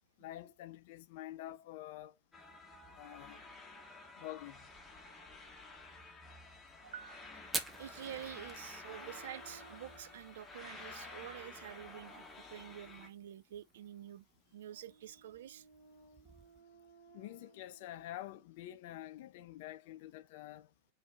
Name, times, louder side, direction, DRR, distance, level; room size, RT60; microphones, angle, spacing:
voice 1, 0.2-2.1 2.9-3.4 4.2-4.6 17.1-20.7, left 14 dB, 50° left, 0.4 m, -47 dB
sound 1, 2.3-13.1, left 3 dB, 10° left, 1.0 m, -52 dB
voice 2, 6.8-7.3 7.8-14.2 14.5-15.6, right 11 dB, 60° right, 0.3 m, -48 dB
Fire, 7.4-16.6, right 4 dB, 15° right, 0.6 m, -49 dB
sound 2, 8.8-10.2 10.8-12.6 14.7-18.0, right 4 dB, 35° right, 2.0 m, -61 dB
4.2 x 2.6 x 4.2 m
figure-of-eight pair, 90°, 0 cm